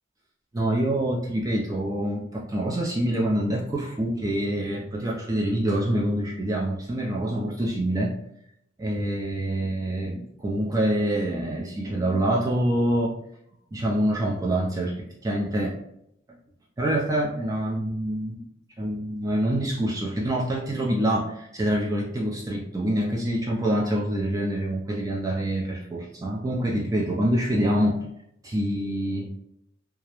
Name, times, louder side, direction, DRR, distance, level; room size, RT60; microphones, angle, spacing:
voice 1, 0.5-8.1 8.8-13.1 13.7-15.7 16.8-18.4 18.8-28.0 28.4-29.3, right 1 dB, 20° right, -3 dB, 0.3 m, -26 dB
2.3 x 2.0 x 2.9 m, 0.76 s
head